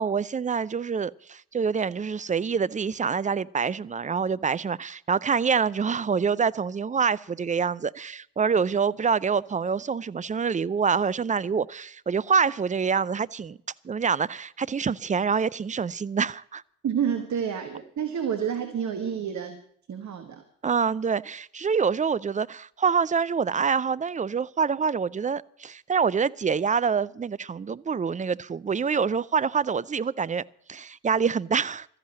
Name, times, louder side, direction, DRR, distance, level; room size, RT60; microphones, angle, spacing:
voice 1, 0.0-13.6 13.8-16.6 20.6-30.4 30.7-31.9, right 6 dB, 20° right, 0.5 m, -26 dB
voice 2, 16.8-19.6 19.9-20.4, right 8 dB, 50° right, 1.6 m, -29 dB
13.5 x 11.0 x 7.6 m
hypercardioid pair, 45°, 37 cm